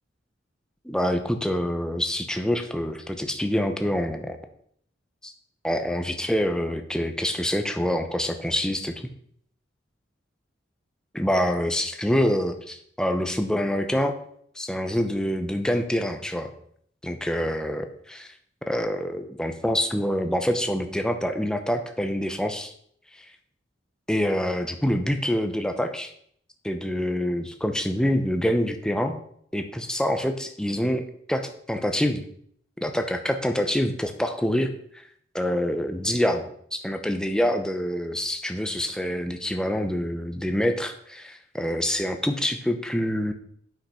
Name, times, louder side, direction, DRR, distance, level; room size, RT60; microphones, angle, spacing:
voice 1, 0.8-4.4 5.2-5.3 5.6-8.9 11.1-14.2 14.6-16.5 17.0-18.3 18.7-22.7 23.2-23.3 24.1-26.1 26.6-29.2 29.5-32.2 32.8-34.7 35.3-36.4 36.7-43.3, equal, 5° left, 6 dB, 0.8 m, -26 dB
9.0 x 5.8 x 5.7 m, 0.65 s
head